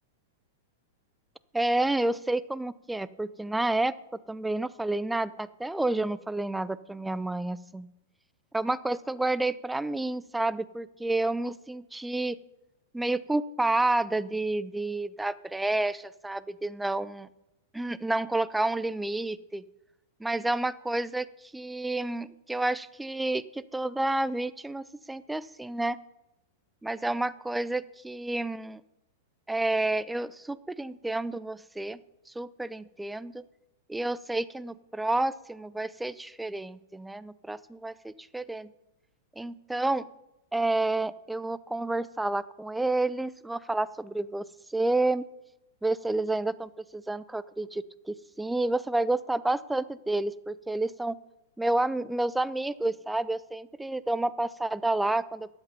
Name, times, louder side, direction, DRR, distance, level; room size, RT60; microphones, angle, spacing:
voice 1, 1.5-3.9 4.3-7.9 8.5-12.4 12.9-17.3 17.7-19.6 20.2-21.3 21.5-26.0 26.8-28.8 29.5-32.0 32.4-33.4 33.9-38.7 39.4-40.1 40.5-45.3 45.8-51.2 51.6-55.5, right 2 dB, 5° right, 17 dB, 0.4 m, -30 dB
12.5 x 8.0 x 5.3 m, 0.91 s
figure-of-eight pair, 100°, 0 cm